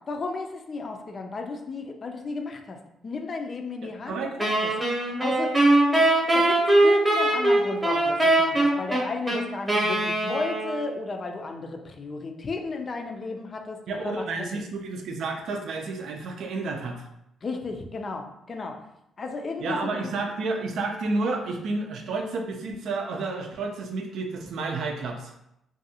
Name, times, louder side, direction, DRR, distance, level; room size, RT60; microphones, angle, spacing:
voice 1, 0.1-2.8 3.0-4.7 5.2-5.5 5.9-14.2 17.4-18.8 19.2-20.1, left 3 dB, 40° left, 4 dB, 0.4 m, -34 dB
voice 2, 4.0-4.4 13.9-17.1 19.6-25.4, right 3 dB, 70° right, 3 dB, 0.4 m, -30 dB
Wind instrument woodwind instrument, 4.4-11.0, right 1 dB, 15° right, 0.9 m, -21 dB
2.6 x 2.3 x 2.7 m, 0.83 s
cardioid pair, 90°, 0 cm